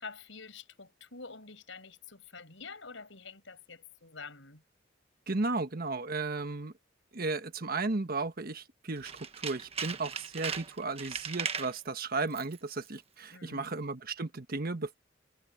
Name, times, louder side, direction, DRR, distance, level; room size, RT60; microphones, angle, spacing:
voice 1, 0.0-4.6 13.3-13.7, left 4 dB, 80° left, 5.7 m, -47 dB
voice 2, 5.3-6.7 7.1-14.9, right 3 dB, 50° right, 1.4 m, -34 dB
Tools, 9.0-11.8 12.3-12.6 12.9-13.0, right 6 dB, 35° right, 1.3 m, -38 dB
head